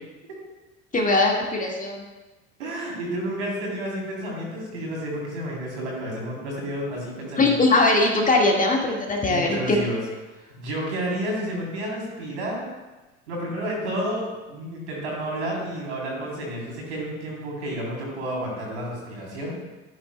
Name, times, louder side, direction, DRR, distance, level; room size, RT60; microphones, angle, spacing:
voice 1, 0.9-2.0 7.4-9.8, left 2 dB, 20° left, 1 dB, 1.7 m, -20 dB
voice 2, 2.6-7.6 9.3-10.0 10.4-12.6 13.3-19.5, right 1 dB, 70° right, -2 dB, 3.5 m, -31 dB
13.0 x 10.0 x 2.2 m, 1.1 s
figure-of-eight pair, 65°, 35 cm